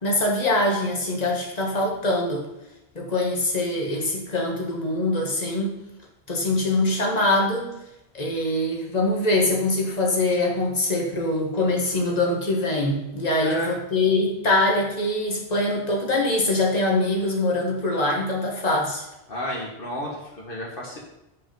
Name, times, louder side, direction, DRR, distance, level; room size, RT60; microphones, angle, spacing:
voice 1, 0.0-2.5 2.9-5.7 6.3-7.7 8.1-19.0, left 2 dB, 40° left, -1 dB, 1.7 m, -23 dB
voice 2, 13.3-13.7 19.3-21.0, left 1 dB, 55° left, -3 dB, 1.6 m, -32 dB
8.4 x 4.9 x 5.3 m, 0.90 s
omnidirectional pair, 1.1 m